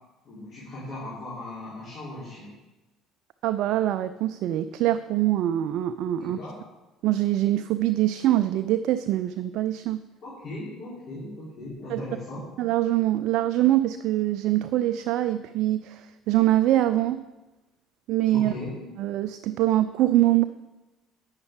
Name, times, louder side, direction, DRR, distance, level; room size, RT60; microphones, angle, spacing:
voice 1, 0.2-2.5 6.2-6.6 10.2-12.4 18.3-18.7, left 2 dB, 45° left, -8 dB, 3.8 m, -38 dB
voice 2, 3.4-6.4 7.0-10.0 11.9-12.0 12.6-17.2 18.1-18.5 19.0-20.4, right 14 dB, 55° right, 11 dB, 0.4 m, -24 dB
11.0 x 8.9 x 3.8 m, 1.1 s
figure-of-eight pair, 55°, 0 cm